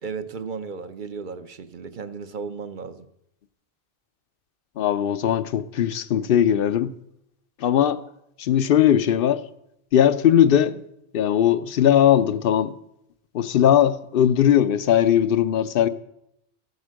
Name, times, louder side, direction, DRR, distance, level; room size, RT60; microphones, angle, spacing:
voice 1, 0.0-3.1, right 5 dB, 50° right, 0.8 m, -34 dB
voice 2, 4.8-6.9 7.6-8.0 8.4-9.4 9.9-10.8 11.1-12.8 13.3-15.9, left 10 dB, 60° left, 0.8 m, -19 dB
14.5 x 8.1 x 6.4 m
omnidirectional pair, 1.2 m